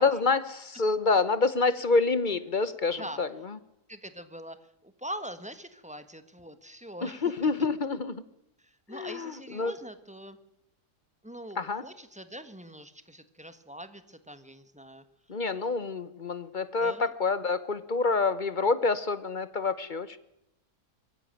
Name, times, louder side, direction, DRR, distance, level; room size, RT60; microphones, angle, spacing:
voice 1, 0.0-3.3 7.0-8.2 8.9-9.7 11.6-11.8 15.3-20.2, left 4 dB, 35° left, 14 dB, 0.9 m, -27 dB
voice 2, 3.9-7.3 8.6-10.4 11.2-15.0 16.8-17.1, equal, 5° right, 10 dB, 1.2 m, -43 dB
22.5 x 15.0 x 9.1 m, 0.85 s
omnidirectional pair, 1.7 m